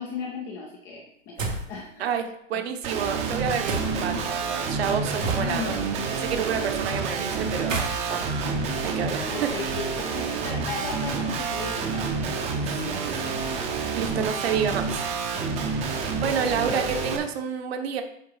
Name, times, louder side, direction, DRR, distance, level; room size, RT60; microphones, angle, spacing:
voice 1, 0.0-2.1 2.5-2.6 5.4-5.9 8.3-8.7 9.3-13.6 16.0-16.2 16.5-16.8, left 4 dB, 10° left, -1 dB, 0.4 m, -37 dB
sound 1, 1.4-1.8 3.7-4.2 5.2-5.8 7.5-9.5, right 3 dB, 85° right, 2.1 m, -32 dB
voice 2, 2.0-5.7 6.1-8.2 8.8-9.5 13.9-15.0 16.2-18.0, right 7 dB, 55° right, 6 dB, 1.2 m, -29 dB
Guitar, 2.8-17.2, right 5 dB, 20° right, 0.7 m, -29 dB
7.6 x 3.6 x 5.7 m, 0.73 s
hypercardioid pair, 140°, 37 cm